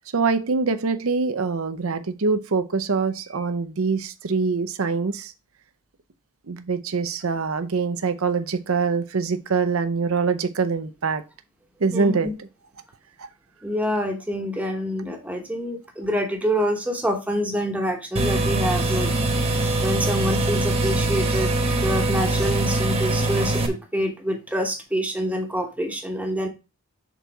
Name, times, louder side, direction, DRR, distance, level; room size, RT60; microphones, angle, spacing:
voice 1, 0.1-5.3 6.5-11.2 11.8-12.5 13.2-13.3, right 4 dB, 70° right, 0.6 m, -24 dB
voice 2, 11.9-12.3 13.6-19.1 19.8-26.5, equal, 5° right, 1.0 m, -26 dB
sound 1, 18.2-23.7, right 2 dB, 25° right, 1.1 m, -23 dB
6.1 x 4.0 x 4.6 m
head